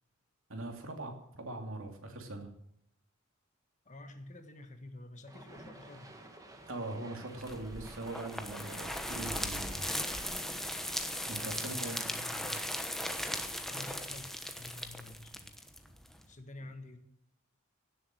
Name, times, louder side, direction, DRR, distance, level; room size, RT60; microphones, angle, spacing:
voice 1, 0.5-2.5 6.7-9.9 11.3-12.0, right 2 dB, 70° right, 3 dB, 2.8 m, -41 dB
voice 2, 3.8-6.2 11.4-12.6 13.7-15.5 16.3-17.0, left 2 dB, 35° left, 7 dB, 1.5 m, -49 dB
sound 1, 5.3-11.8, right 1 dB, 15° right, 1.9 m, -52 dB
sound 2, 7.4-16.2, left 1 dB, ahead, 1.1 m, -38 dB
17.0 x 7.6 x 7.8 m, 0.77 s
head